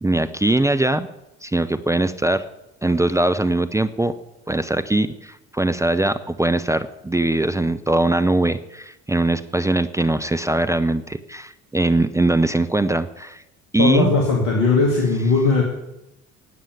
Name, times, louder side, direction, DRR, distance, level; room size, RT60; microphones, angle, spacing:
voice 1, 0.0-1.1 1.4-2.4 2.8-4.1 4.5-13.4 13.7-14.1, right 2 dB, 10° right, 9 dB, 0.8 m, -21 dB
voice 2, 13.8-15.6, left 3 dB, 65° left, 0 dB, 2.6 m, -18 dB
17.0 x 9.2 x 9.0 m, 0.92 s
figure-of-eight pair, 60°, 39 cm